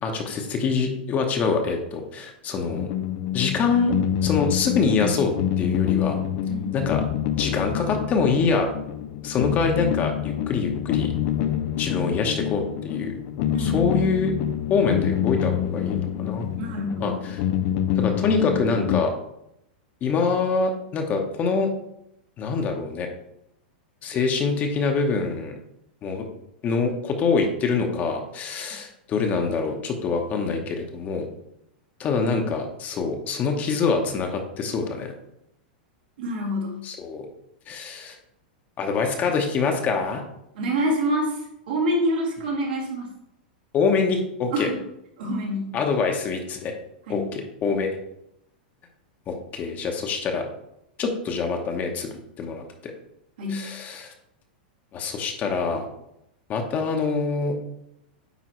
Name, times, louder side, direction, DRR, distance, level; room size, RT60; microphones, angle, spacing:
voice 1, 0.0-2.9 3.3-3.9 4.2-6.2 6.7-7.0 7.4-8.7 9.2-11.1 11.8-13.2 13.6-14.3 14.7-16.6 17.0-17.4 18.0-19.1 20.0-21.7 22.4-23.1 24.0-25.5 26.0-26.2 26.6-31.3 32.0-35.1 36.8-37.3 37.7-38.2 38.8-40.2 43.7-44.7 45.7-46.7 47.1-47.9 49.3-50.4 51.0-52.1 52.4-52.9 53.5-54.1 54.9-55.8 56.5-57.6, left 4 dB, 30° left, 4 dB, 1.0 m, -25 dB
sound 1, 2.7-19.0, left 10 dB, 50° left, 0.4 m, -27 dB
voice 2, 13.5-13.9 16.6-17.1 36.2-36.8 40.5-41.4 41.7-43.1 44.5-44.8 45.2-45.7 47.1-47.3 53.4-53.6, equal, 75° right, -2 dB, 2.1 m, -26 dB
9.2 x 3.4 x 3.1 m, 0.79 s
hypercardioid pair, 120°, 5 cm